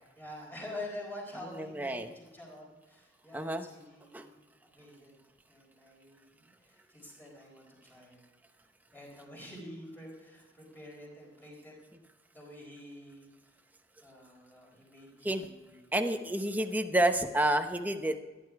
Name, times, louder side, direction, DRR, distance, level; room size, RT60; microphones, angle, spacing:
voice 1, 0.2-4.5 4.7-5.2 5.5-8.2 8.9-11.7 12.3-13.3 14.0-15.8 16.5-16.7, left 1 dB, 10° left, -2 dB, 4.5 m, -47 dB
voice 2, 1.4-2.1 3.3-3.6 4.1-4.3 15.2-15.5 15.9-18.2, right 1 dB, 10° right, 6 dB, 0.8 m, -29 dB
16.0 x 11.0 x 4.7 m, 1.2 s
head